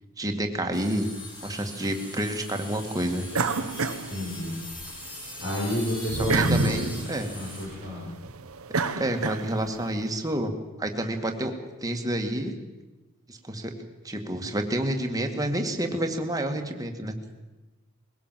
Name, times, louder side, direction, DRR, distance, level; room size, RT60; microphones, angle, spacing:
voice 1, 0.2-1.1 1.4-3.3 6.3-7.3 9.0-10.5 10.8-11.5 11.8-12.5 13.3-13.7 14.0-17.1, right 1 dB, 15° right, 4 dB, 2.0 m, -29 dB
sound 1, 0.7-7.7, left 1 dB, 20° left, 5.3 m, -41 dB
sound 2, 3.3-4.9 5.3-9.8, right 3 dB, 85° right, 1.2 m, -29 dB
voice 2, 4.1-4.5 5.4-6.7 7.3-8.0, equal, 60° left, -5 dB, 6.8 m, -30 dB
22.0 x 17.5 x 7.6 m, 1.1 s
head